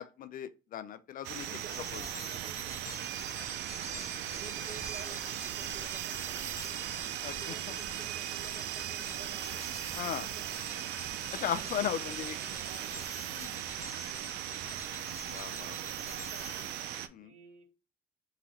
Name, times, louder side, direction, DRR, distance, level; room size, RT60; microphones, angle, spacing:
voice 1, 0.0-1.5 1.9-2.0 7.2-7.4 10.0-10.3 11.4-12.4 13.3-13.6 15.3-15.8 17.1-17.3, left 9 dB, 55° left, 0.5 m, -36 dB
sound 1, 1.2-17.1, right 11 dB, 90° right, 0.5 m, -38 dB
sound 2, 1.4-16.8, left 2 dB, 20° left, 0.7 m, -48 dB
voice 2, 1.4-3.1 3.7-6.8 7.3-10.6 11.2-13.0 14.6-15.0 15.7-16.8 17.2-17.6, right 5 dB, 45° right, 2.0 m, -53 dB
3.8 x 2.9 x 4.1 m
cardioid pair, 110°, 17 cm